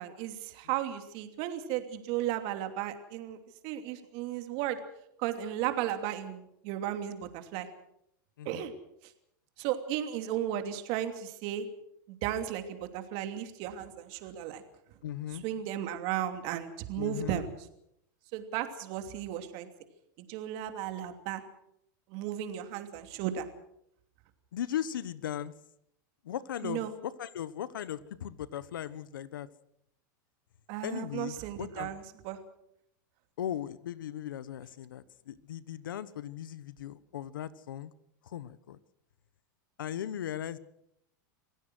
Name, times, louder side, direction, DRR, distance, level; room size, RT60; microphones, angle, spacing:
voice 1, 0.0-3.4 3.6-4.8 5.2-7.7 8.4-8.7 9.0-9.1 9.6-11.7 12.1-14.6 15.4-17.5 18.3-19.7 20.3-21.4 22.1-23.5 26.6-26.9 30.7-32.4, right 11 dB, 50° right, 7 dB, 2.9 m, -35 dB
voice 2, 8.4-8.7 15.0-15.4 17.0-17.4 24.5-25.5 26.2-29.5 30.8-31.9 33.4-37.9 38.2-38.8 39.8-40.6, left 10 dB, 85° left, 17 dB, 1.2 m, -38 dB
26.0 x 16.5 x 6.3 m, 0.76 s
supercardioid pair, 130°, 11 cm